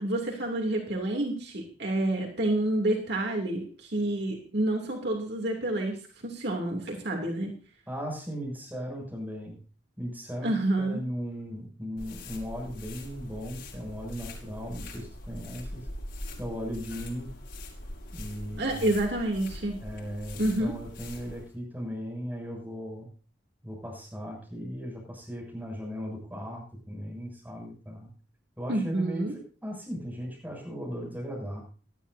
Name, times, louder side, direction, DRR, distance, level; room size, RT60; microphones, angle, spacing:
voice 1, 0.0-6.0 6.2-7.5 10.4-11.0 18.6-19.8 20.4-20.7 28.7-29.3, right 1 dB, 65° right, 1 dB, 2.8 m, -28 dB
voice 2, 7.9-9.6 10.0-10.5 10.8-15.9 16.4-17.4 18.1-18.9 19.8-23.1 23.6-28.1 28.6-29.3 29.6-31.6, equal, 10° right, -1 dB, 7.0 m, -37 dB
sound 1, 12.0-21.5, left 1 dB, 90° left, 5.9 m, -42 dB
19.5 x 12.5 x 2.7 m, 0.39 s
head